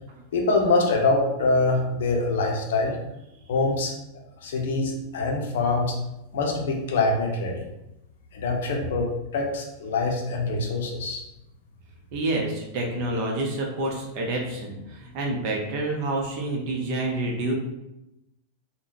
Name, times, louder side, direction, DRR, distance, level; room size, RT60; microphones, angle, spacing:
voice 1, 0.3-3.0 3.5-3.9 4.4-5.9 6.3-7.7 8.3-11.2, left 3 dB, 60° left, 1 dB, 0.6 m, -24 dB
voice 2, 12.1-17.5, right 2 dB, 45° right, 0 dB, 0.7 m, -28 dB
3.6 x 2.1 x 2.7 m, 0.91 s
figure-of-eight pair, 90°, 0 cm